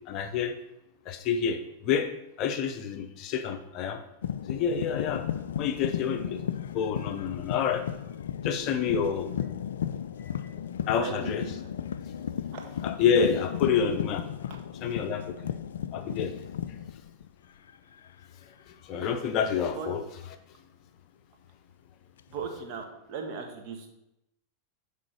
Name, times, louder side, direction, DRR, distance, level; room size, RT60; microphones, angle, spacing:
voice 1, 0.1-0.5 1.1-2.1 2.4-4.0 4.5-5.3 5.6-6.4 6.7-7.9 8.4-9.3 10.2-10.5 10.9-11.5 12.8-14.3 14.8-15.4 15.9-16.3 18.7-20.0, left 7 dB, 40° left, 7 dB, 0.7 m, -28 dB
sound 1, 4.2-17.7 18.0-18.4 20.2-20.3 22.2-22.8, left 9 dB, 65° left, 0.3 m, -35 dB
voice 2, 10.9-11.5 12.5-12.6 19.0-19.1 19.7-19.9 22.3-23.9, right 5 dB, 40° right, 2 dB, 1.5 m, -38 dB
7.5 x 3.8 x 6.2 m, 0.86 s
figure-of-eight pair, 90°, 0 cm